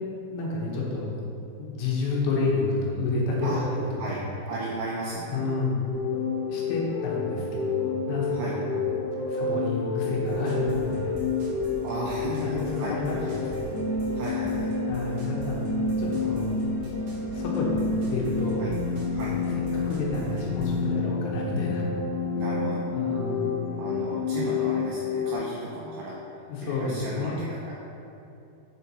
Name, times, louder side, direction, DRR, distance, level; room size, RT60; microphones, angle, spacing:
voice 1, 0.2-1.1 1.6-3.6 4.0-4.3 5.3-5.8 6.5-8.8 9.3-11.2 12.3-13.7 14.9-16.6 17.3-18.7 19.2-19.4 19.7-21.9 22.9-23.4 26.5-27.5, left 3 dB, 85° left, -4 dB, 3.4 m, -30 dB
voice 2, 4.5-5.6 8.3-8.6 11.8-13.3 14.1-14.7 18.6-18.8 19.1-19.3 21.4-21.8 22.3-22.8 23.8-26.2 26.6-27.7, right 3 dB, 90° right, -4 dB, 2.2 m, -35 dB
sound 1, 5.9-25.4, left 4 dB, 65° left, 2.2 m, -29 dB
sound 2, 10.2-20.8, equal, 70° right, 1.8 m, -42 dB
7.5 x 4.5 x 4.1 m, 2.8 s
omnidirectional pair, 5.2 m